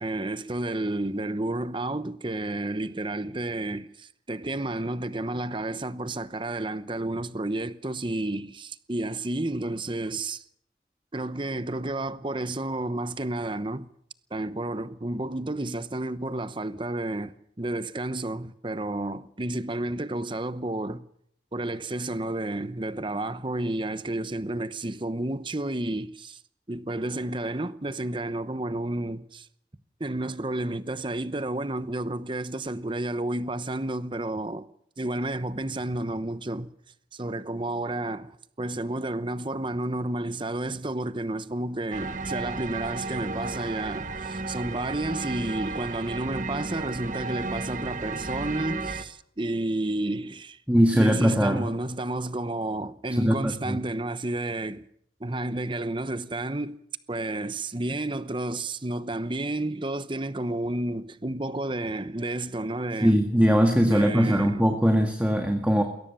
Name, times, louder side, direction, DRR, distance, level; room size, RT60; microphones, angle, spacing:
voice 1, 0.0-10.4 11.1-13.9 14.3-21.0 21.5-26.4 26.7-29.5 30.0-34.7 35.0-36.7 37.1-50.6 50.9-54.9 55.2-56.8 57.1-63.2 63.8-64.6, right 2 dB, 30° right, 0.9 m, -31 dB
sound 1, 41.9-49.0, right 3 dB, 45° right, 1.3 m, -34 dB
voice 2, 50.7-51.6 53.1-53.8 63.0-65.8, equal, 10° right, 1.8 m, -21 dB
21.5 x 17.5 x 6.9 m
head